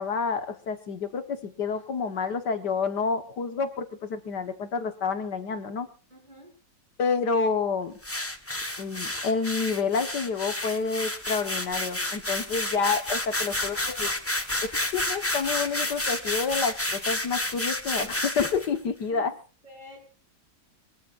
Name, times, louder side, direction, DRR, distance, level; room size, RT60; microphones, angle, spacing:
voice 1, 0.0-5.9 7.0-7.9 8.8-14.1 14.6-19.3, left 5 dB, 75° left, 7 dB, 2.0 m, -29 dB
voice 2, 6.1-6.5 13.3-14.2 19.1-19.3 19.6-20.1, equal, 25° right, 1 dB, 6.1 m, -49 dB
sound 1, 8.0-18.7, left 1 dB, 10° left, 1.1 m, -30 dB
23.5 x 21.5 x 2.5 m, 0.38 s
omnidirectional pair, 1.8 m